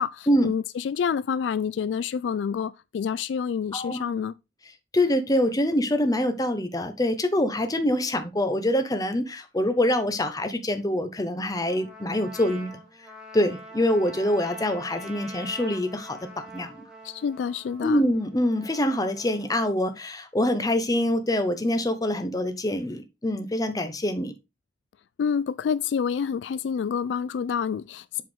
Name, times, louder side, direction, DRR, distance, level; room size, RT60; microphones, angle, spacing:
voice 1, 0.0-4.3 17.0-18.0 25.2-28.2, left 7 dB, 70° left, 0.3 m, -28 dB
voice 2, 3.7-4.1 4.9-12.8 13.3-16.7 17.8-24.3, left 1 dB, 20° left, 0.9 m, -25 dB
Trumpet, 11.6-19.7, right 1 dB, 5° right, 2.1 m, -44 dB
7.7 x 4.6 x 3.7 m
head